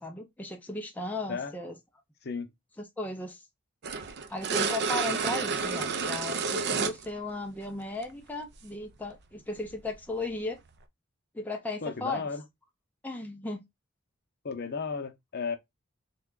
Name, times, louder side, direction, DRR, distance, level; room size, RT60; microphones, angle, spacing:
voice 1, 0.0-1.8 3.0-3.4 4.3-10.6 11.3-12.2 13.0-13.6, left 2 dB, 10° left, 0.4 m, -36 dB
sound 1, 3.8-7.1 8.0-8.1 9.8-9.9, right 5 dB, 55° right, 0.5 m, -30 dB
voice 2, 11.8-12.4 14.4-15.6, left 5 dB, 50° left, 0.6 m, -34 dB
3.5 x 2.2 x 3.6 m
head